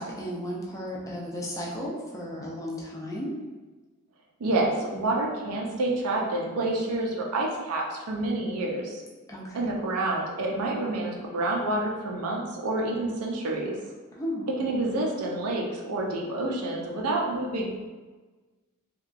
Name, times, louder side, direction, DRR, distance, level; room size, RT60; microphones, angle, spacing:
voice 1, 0.0-3.3 9.3-9.7 14.1-14.5, equal, 15° left, -4 dB, 0.4 m, -34 dB
voice 2, 4.4-9.0 9.5-13.8 14.6-17.7, right 2 dB, 85° right, -1 dB, 0.5 m, -28 dB
2.8 x 2.3 x 2.5 m, 1.3 s
head